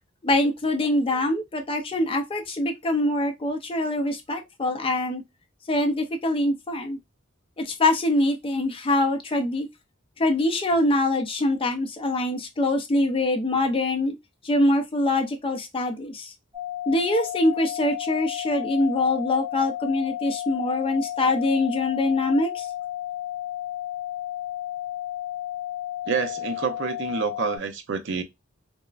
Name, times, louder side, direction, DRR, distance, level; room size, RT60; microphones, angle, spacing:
voice 1, 0.2-5.2 5.7-7.0 7.6-9.7 10.2-14.1 14.4-16.3 16.9-22.7, left 2 dB, 25° left, 0.5 m, -24 dB
sound 1, 16.5-27.6, left 13 dB, 25° right, 1.4 m, -33 dB
voice 2, 26.1-28.2, right 5 dB, 60° right, 0.5 m, -28 dB
3.3 x 2.0 x 2.3 m
head